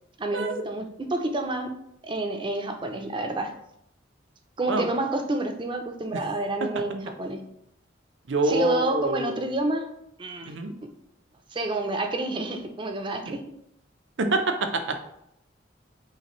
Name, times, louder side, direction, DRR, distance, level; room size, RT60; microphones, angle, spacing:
voice 1, 0.2-1.7 2.0-3.5 4.6-7.4 8.4-9.9 10.2-10.5 11.5-13.4, right 2 dB, 25° right, 5 dB, 0.4 m, -29 dB
voice 2, 8.3-9.4 10.5-10.7 13.3-13.4 14.2-15.0, right 2 dB, 75° right, 6 dB, 0.6 m, -26 dB
5.6 x 2.6 x 3.0 m, 0.76 s
head